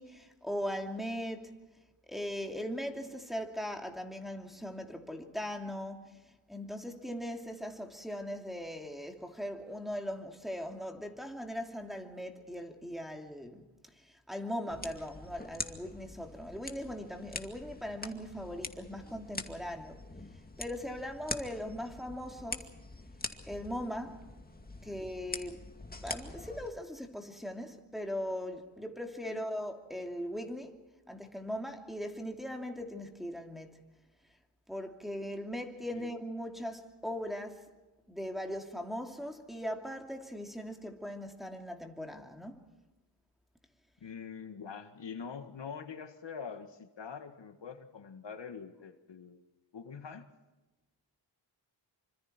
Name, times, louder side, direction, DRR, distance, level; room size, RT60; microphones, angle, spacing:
voice 1, 0.0-1.6 2.1-6.1 6.5-13.6 14.1-20.0 20.6-22.7 23.5-24.3 24.8-25.6 26.0-30.8 31.1-33.8 34.7-37.7 38.1-42.6, equal, ahead, 2.8 m, -39 dB
sound 1, 14.7-26.7, left 2 dB, 20° left, 2.3 m, -44 dB
voice 2, 44.0-49.4 49.7-50.3, left 6 dB, 65° left, 2.0 m, -44 dB
26.0 x 25.5 x 4.5 m
cardioid pair, 80°, 46 cm